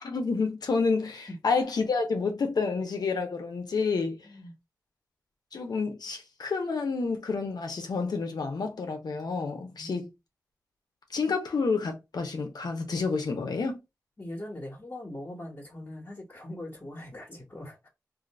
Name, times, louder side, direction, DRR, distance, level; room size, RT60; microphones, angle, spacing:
voice 1, 0.0-4.2 5.5-10.0 11.1-13.8, left 4 dB, 85° left, 0.9 m, -29 dB
voice 2, 4.2-4.6 9.7-10.1 14.2-17.9, left 1 dB, 40° left, 1.3 m, -41 dB
2.8 x 2.5 x 4.1 m
cardioid pair, 40°, 7 cm